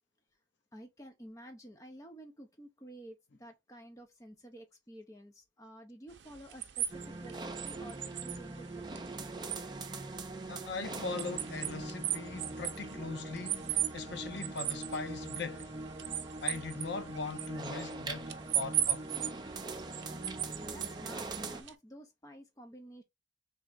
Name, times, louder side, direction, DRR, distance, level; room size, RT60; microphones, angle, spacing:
voice 1, 0.7-9.0 20.4-23.0, right 1 dB, 15° left, 0.8 m, -52 dB
sound 1, 6.1-21.7, right 12 dB, 65° right, 0.6 m, -39 dB
sound 2, 6.9-21.6, right 2 dB, 20° right, 0.5 m, -42 dB
voice 2, 10.5-15.7 16.4-19.1, left 4 dB, 60° left, 0.6 m, -40 dB
3.5 x 3.2 x 3.9 m
head